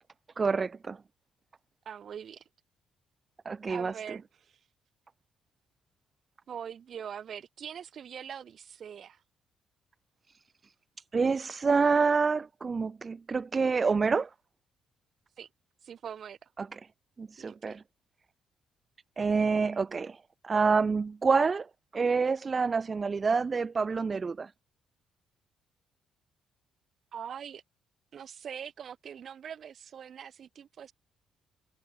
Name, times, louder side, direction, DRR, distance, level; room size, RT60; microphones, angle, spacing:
voice 1, 0.4-1.0 3.5-3.9 11.1-14.3 16.6-16.8 17.2-17.8 19.2-21.7 21.9-24.5, right 4 dB, 40° right, 0.6 m, -27 dB
voice 2, 1.8-2.4 3.7-4.6 6.5-9.2 15.4-15.5 15.8-16.5 17.4-17.8 27.1-27.6 28.1-30.9, right 8 dB, 55° right, 7.9 m, -43 dB
hypercardioid pair, 55°, 0 cm